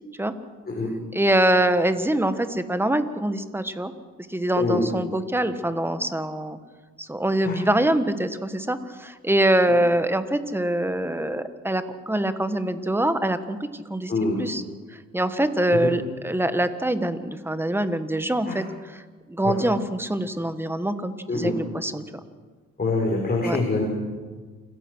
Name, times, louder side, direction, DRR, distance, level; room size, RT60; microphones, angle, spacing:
voice 1, 1.1-3.9 4.3-6.6 7.0-14.1 14.4-14.6 14.9-19.0 19.3-22.0 23.4-23.6, right 1 dB, 5° right, 10 dB, 1.5 m, -24 dB
voice 2, 22.8-23.8, left 3 dB, 30° left, -2 dB, 4.8 m, -24 dB
28.5 x 15.5 x 6.3 m, 1.4 s
cardioid pair, 90°, 30 cm